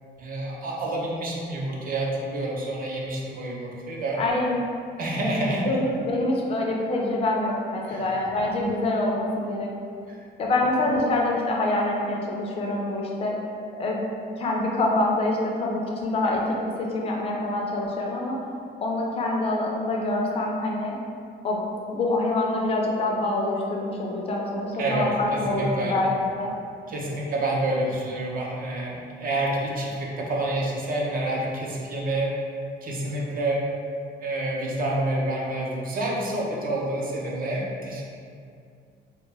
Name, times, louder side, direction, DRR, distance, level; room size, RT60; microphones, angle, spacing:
voice 1, 0.2-4.2 5.0-5.7 7.8-8.1 10.1-10.2 24.8-26.0 26.9-32.3 32.8-33.6 34.2-38.0, right 1 dB, 50° right, -3 dB, 0.5 m, -28 dB
voice 2, 4.2-4.6 5.2-5.4 5.6-9.7 10.4-13.4 13.8-14.0 14.4-16.4 16.8-18.4 18.8-21.0 21.4-21.6 21.9-26.5, left 2 dB, 30° left, -1 dB, 0.4 m, -25 dB
2.2 x 2.1 x 3.2 m, 2.3 s
cardioid pair, 120°, 19 cm